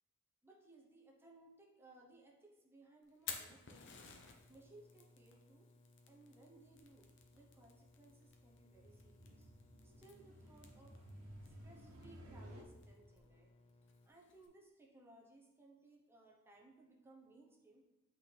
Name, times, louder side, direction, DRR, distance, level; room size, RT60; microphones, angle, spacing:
voice 1, 0.4-4.1 4.5-5.7 6.1-9.5 9.8-11.0 11.4-13.5 14.0-17.8, right 2 dB, 10° right, -1 dB, 0.9 m, -63 dB
Fire, 3.0-14.5, left 6 dB, 55° left, 0.7 m, -56 dB
sound 1, 4.0-14.1, left 2 dB, 30° left, 0.3 m, -67 dB
sound 2, 6.6-12.6, equal, 85° right, 1.0 m, -57 dB
8.0 x 3.9 x 3.3 m, 1.1 s
head